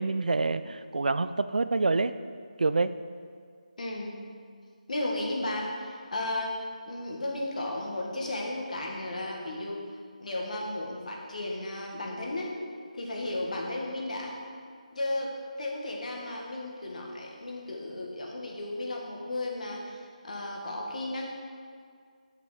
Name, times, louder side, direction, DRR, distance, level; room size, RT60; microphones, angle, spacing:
voice 1, 0.0-2.1 2.6-2.9, right 3 dB, 80° right, 12 dB, 0.4 m, -26 dB
voice 2, 3.8-4.2 4.9-9.8 10.2-12.5 12.9-14.4 14.9-15.3 15.6-21.3, left 1 dB, 65° left, -1 dB, 1.9 m, -34 dB
7.8 x 7.1 x 5.0 m, 2.1 s
figure-of-eight pair, 165°, 4 cm